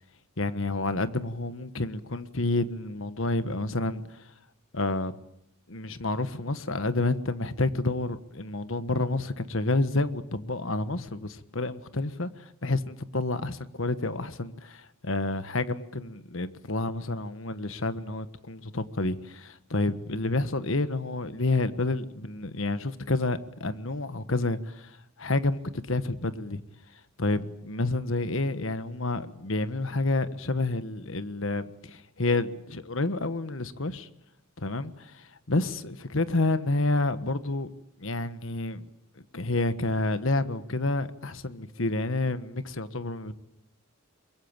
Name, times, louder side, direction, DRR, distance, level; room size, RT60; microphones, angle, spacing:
voice 1, 0.4-4.3 4.7-5.2 5.7-26.6 27.2-34.1 34.6-37.7 38.0-38.9 39.2-43.3, left 2 dB, 65° left, 1.4 m, -29 dB
24.0 x 22.0 x 8.9 m
head